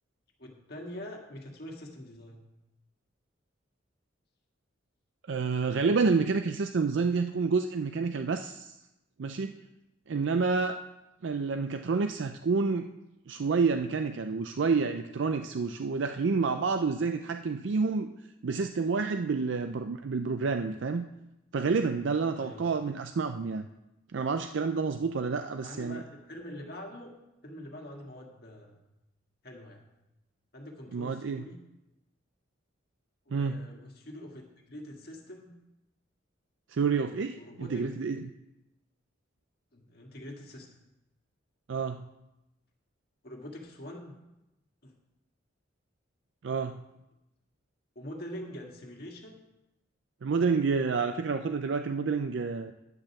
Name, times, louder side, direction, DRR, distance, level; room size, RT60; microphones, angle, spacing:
voice 1, 0.4-2.4 22.4-22.8 25.6-27.1 27.4-28.8 29.4-29.8 30.5-31.6 33.3-35.5 37.3-37.8 39.7-40.7 43.2-44.2 44.8-44.9 48.0-49.4, left 1 dB, 55° left, 1 dB, 1.8 m, -44 dB
voice 2, 5.3-8.7 9.2-9.5 10.1-10.8 11.2-12.9 13.3-18.1 18.4-21.1 21.5-23.6 24.1-26.0 30.9-31.4 33.3-33.7 36.7-38.3 41.7-42.0 46.4-46.8 50.2-52.7, right 4 dB, 70° right, 7 dB, 0.4 m, -29 dB
10.5 x 5.3 x 7.1 m, 0.93 s
head